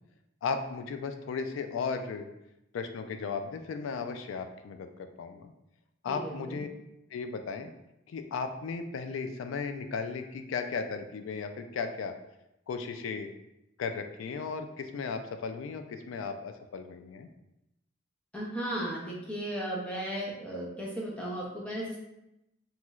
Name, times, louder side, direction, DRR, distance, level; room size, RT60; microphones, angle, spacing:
voice 1, 0.4-2.3 2.7-5.5 6.0-6.7 7.1-7.7 8.1-12.2 12.7-13.3 13.8-17.3, left 5 dB, 80° left, 8 dB, 0.3 m, -35 dB
voice 2, 6.1-6.6 18.3-22.0, right 1 dB, 5° left, -5 dB, 0.6 m, -35 dB
3.0 x 2.9 x 2.3 m, 0.87 s
head